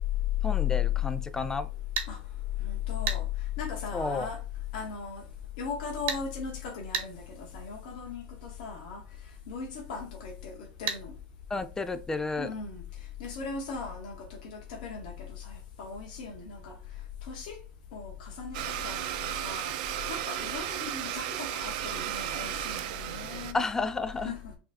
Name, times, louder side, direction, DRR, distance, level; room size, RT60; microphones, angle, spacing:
voice 1, 0.4-1.7 3.9-4.3 11.5-12.5 23.5-24.3, left 3 dB, 10° left, 0.4 m, -31 dB
sound 1, 2.0-2.1 3.1-3.2 6.1-6.2 6.9-7.1 10.9-11.0, right 7 dB, 50° right, 1.1 m, -30 dB
voice 2, 2.6-3.2 3.6-4.4 4.7-5.2 5.6-9.0 9.5-11.1 12.4-12.8 13.2-16.8 17.3-17.6 17.9-19.7 20.1-23.6 24.2-24.5, left 5 dB, 65° left, 0.9 m, -38 dB
Domestic sounds home sounds, 18.5-23.5, right 11 dB, 65° right, 0.5 m, -34 dB
5.4 x 2.8 x 2.5 m
supercardioid pair, 120°, 5 cm